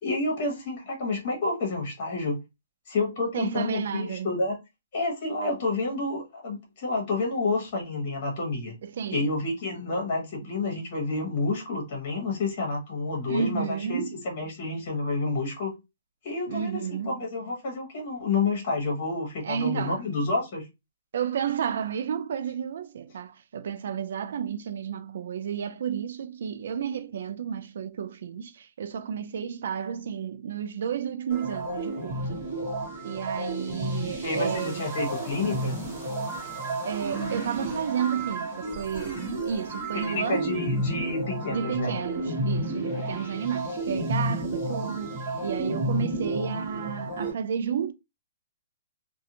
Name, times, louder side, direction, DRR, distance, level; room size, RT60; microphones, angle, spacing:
voice 1, 0.0-2.4 2.9-4.6 4.9-8.8 9.1-15.7 16.2-20.7 34.2-35.8 39.9-42.0, left 3 dB, 35° left, 1.1 m, -29 dB
voice 2, 3.3-4.4 8.8-9.3 13.2-14.2 16.5-17.3 19.4-20.0 21.1-32.5 33.0-34.8 36.8-40.5 41.5-47.9, right 8 dB, 60° right, 0.3 m, -32 dB
sound 1, 31.3-47.3, right 1 dB, 25° right, 1.2 m, -31 dB
2.4 x 2.2 x 2.8 m
hypercardioid pair, 170°, 0 cm